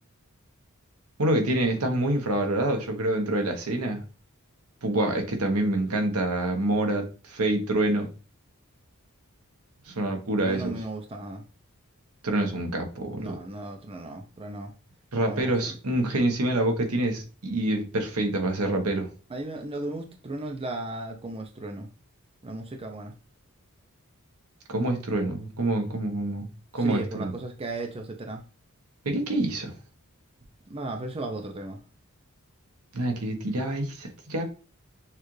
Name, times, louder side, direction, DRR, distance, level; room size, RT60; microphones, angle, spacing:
voice 1, 1.2-4.0 4.8-8.1 9.9-10.7 12.2-13.4 15.1-19.1 24.7-26.5 26.7-27.3 29.0-29.7 32.9-34.4, right 1 dB, 85° right, 1.2 m, -26 dB
voice 2, 10.4-11.4 13.2-14.7 15.2-15.7 19.3-21.9 22.4-23.1 26.8-28.4 30.7-31.8, right 2 dB, 25° right, 0.5 m, -35 dB
6.4 x 2.4 x 3.2 m
head